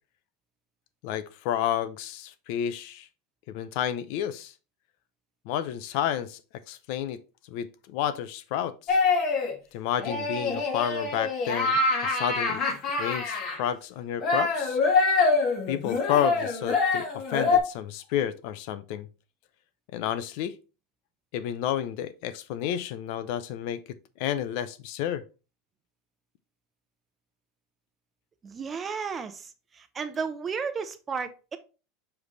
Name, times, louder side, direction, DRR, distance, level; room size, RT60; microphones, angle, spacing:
voice 1, 1.0-3.1 3.5-4.5 5.5-6.4 6.7-7.2 7.5-9.0 9.7-12.6 13.0-14.8 15.7-19.1 19.9-20.6 21.3-23.8 24.2-25.2, left 10 dB, 60° left, 0.6 m, -31 dB
sound 1, 8.9-9.5 10.0-13.6 14.2-17.6, left 4 dB, 40° left, 1.9 m, -25 dB
voice 2, 28.4-31.6, right 5 dB, 20° right, 0.7 m, -33 dB
7.1 x 3.4 x 3.9 m
supercardioid pair, 135°, 0 cm